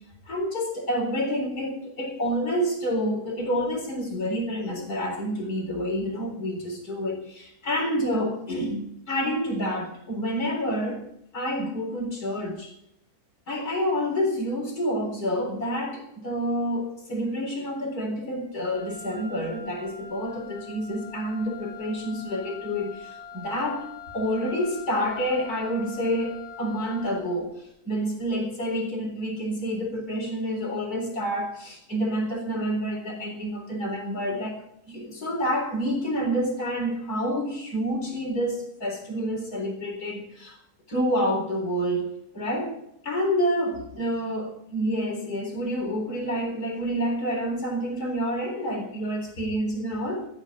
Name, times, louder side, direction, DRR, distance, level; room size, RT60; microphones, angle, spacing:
voice 1, 0.3-11.0 11.3-12.7 13.5-23.9 24.1-40.6 40.9-42.1 42.3-42.8 43.0-50.3, equal, 65° left, 2 dB, 4.5 m, -28 dB
Wind instrument woodwind instrument, 18.6-27.3, left 6 dB, 5° left, 5.0 m, -43 dB
16.0 x 14.5 x 3.7 m, 0.75 s
omnidirectional pair, 1.7 m